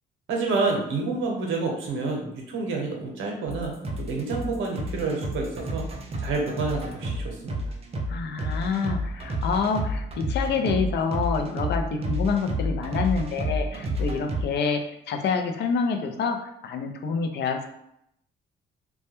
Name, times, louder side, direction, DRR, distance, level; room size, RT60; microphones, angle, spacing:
voice 1, 0.3-5.8 6.2-7.6, right 3 dB, 75° right, 0 dB, 0.7 m, -28 dB
sound 1, 3.5-14.4, equal, 30° right, 0.4 m, -30 dB
voice 2, 8.1-14.8 15.1-17.6, left 5 dB, 60° left, 5 dB, 0.4 m, -27 dB
2.2 x 2.1 x 2.9 m, 0.77 s
cardioid pair, 90°, 20 cm